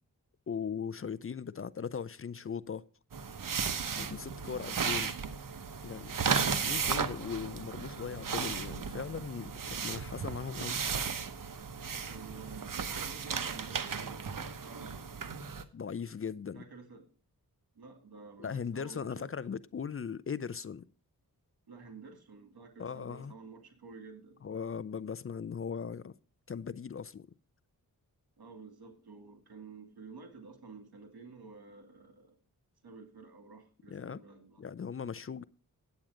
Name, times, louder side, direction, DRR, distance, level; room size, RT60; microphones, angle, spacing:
voice 1, 0.5-2.8 3.9-5.1 5.8-10.8 15.7-16.6 18.4-20.9 22.8-23.3 24.4-26.1 26.5-27.3 33.9-34.2 34.6-35.4, left 6 dB, 35° left, 0.5 m, -39 dB
sound 1, 3.1-15.6, right 6 dB, 60° right, 1.0 m, -35 dB
voice 2, 12.1-15.7 16.5-17.1 17.8-19.3 21.7-24.4 28.4-32.4 32.8-34.7, right 4 dB, 85° right, 2.4 m, -51 dB
9.2 x 8.6 x 4.9 m
cardioid pair, 55°, 37 cm